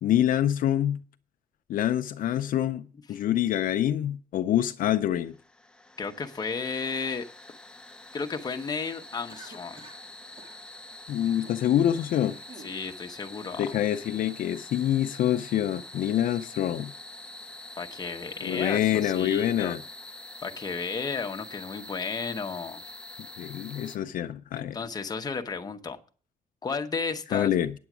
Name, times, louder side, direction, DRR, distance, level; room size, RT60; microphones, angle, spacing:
voice 1, 0.0-1.0 1.7-5.3 11.1-12.4 13.6-16.9 18.4-19.8 23.4-24.8 27.3-27.7, left 11 dB, 70° left, 0.5 m, -26 dB
sound 1, 5.2-24.0, left 2 dB, 5° left, 0.5 m, -45 dB
voice 2, 6.0-7.3 8.1-9.8 12.6-13.7 17.8-19.7 20.4-22.8 24.5-26.0 26.6-27.5, left 5 dB, 25° left, 0.9 m, -33 dB
Cough, 9.3-10.1 10.4-10.6 11.2-11.6 12.1-12.8, right 3 dB, 35° right, 1.8 m, -49 dB
9.3 x 7.8 x 6.0 m
wide cardioid pair, 170°, 15 cm